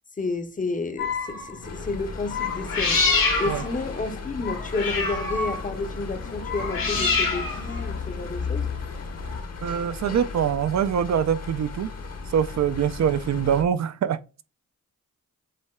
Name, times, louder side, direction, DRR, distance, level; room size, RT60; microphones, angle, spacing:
voice 1, 0.2-3.0 3.4-8.7, left 3 dB, 25° left, 0.7 m, -31 dB
sound 1, 1.0-1.6 2.3-9.4, left 4 dB, 85° left, 1.5 m, -27 dB
sound 2, 1.6-13.6, left 4 dB, 45° left, 0.9 m, -37 dB
voice 2, 9.6-11.9 12.3-14.2, right 8 dB, 55° right, 0.4 m, -24 dB
7.4 x 2.7 x 2.2 m
cardioid pair, 65°, 34 cm